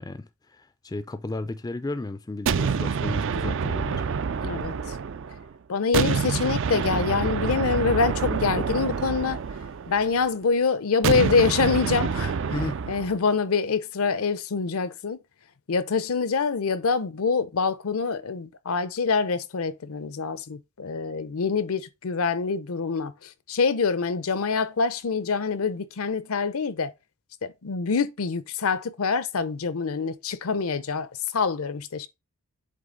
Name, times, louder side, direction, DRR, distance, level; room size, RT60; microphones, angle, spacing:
voice 1, 0.0-4.1 12.5-12.8, left 2 dB, 15° left, 0.3 m, -34 dB
sound 1, 2.5-5.5 5.9-10.2 11.0-13.1, right 6 dB, 60° right, 0.4 m, -27 dB
voice 2, 4.4-5.0 5.7-9.4 9.9-12.4 12.8-15.2 15.7-26.9 27.4-32.1, left 5 dB, 75° left, 0.6 m, -25 dB
7.6 x 3.5 x 3.8 m
head